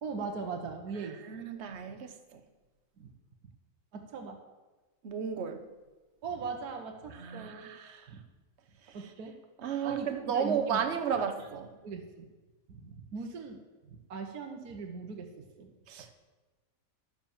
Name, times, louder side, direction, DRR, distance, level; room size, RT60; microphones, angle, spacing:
voice 1, 0.0-1.2 3.0-3.1 3.9-4.4 6.2-7.7 8.1-8.2 8.9-9.4 9.8-10.8 11.1-11.5 11.8-12.3 12.7-15.7, right 5 dB, 65° right, 3 dB, 1.6 m, -40 dB
voice 2, 1.3-2.4 5.0-5.6 7.1-8.0 9.6-11.7 15.9-16.1, right 7 dB, 45° right, 7 dB, 1.2 m, -33 dB
11.0 x 7.3 x 7.2 m, 1.2 s
omnidirectional pair, 1.8 m